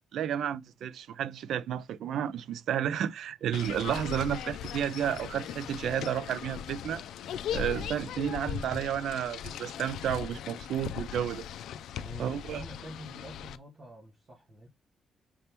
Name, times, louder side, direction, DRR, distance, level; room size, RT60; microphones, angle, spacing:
voice 1, 0.1-7.0 7.5-11.4 12.2-12.6, right 9 dB, 70° right, 0.4 m, -32 dB
sound 1, 3.5-13.6, left 9 dB, 90° left, 0.4 m, -39 dB
voice 2, 12.0-14.7, equal, 35° right, 1.4 m, -47 dB
5.4 x 3.4 x 2.9 m
cardioid pair, 160°, 0 cm